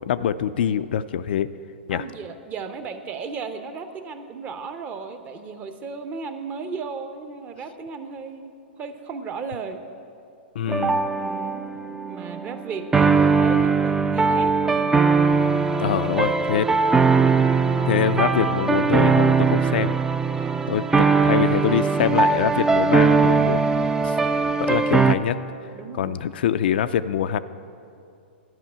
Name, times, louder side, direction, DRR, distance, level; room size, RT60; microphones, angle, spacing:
voice 1, 0.0-1.5 1.9-2.0 10.6-11.0 15.8-16.7 17.8-20.0 20.7-20.8 21.2-23.6 24.0-25.4 25.9-27.4, left 9 dB, 65° left, 12 dB, 0.3 m, -24 dB
voice 2, 1.9-9.8 11.1-15.0 20.3-20.8 25.7-26.2, right 5 dB, 25° right, 8 dB, 0.7 m, -35 dB
sound 1, 10.7-25.1, right 4 dB, 10° right, 0.4 m, -20 dB
11.0 x 5.5 x 8.5 m, 2.5 s
hypercardioid pair, 110°, 6 cm